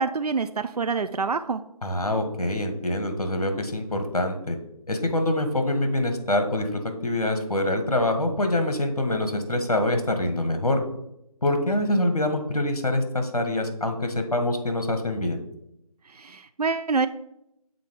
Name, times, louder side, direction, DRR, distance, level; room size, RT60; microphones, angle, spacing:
voice 1, 0.0-1.6 16.1-17.1, right 4 dB, 80° right, 11 dB, 0.5 m, -26 dB
voice 2, 1.8-4.6 4.9-10.8 11.4-15.4, left 1 dB, 70° left, 6 dB, 1.4 m, -25 dB
7.0 x 4.0 x 5.1 m, 0.81 s
figure-of-eight pair, 165°, 20 cm